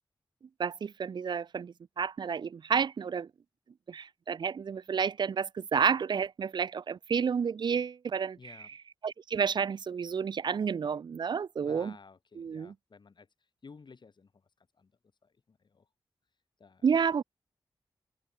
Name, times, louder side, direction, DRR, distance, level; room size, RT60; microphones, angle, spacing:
voice 1, 0.6-3.3 3.9-8.5 9.0-11.9 12.4-12.7 16.8-17.2, right 6 dB, 60° right, 0.4 m, -30 dB
voice 2, 8.4-8.8 11.6-14.5 14.7-14.9 15.2-15.9 16.6-16.9, left 4 dB, 60° left, 6.3 m, -55 dB
open air
wide cardioid pair, 85°, 9 cm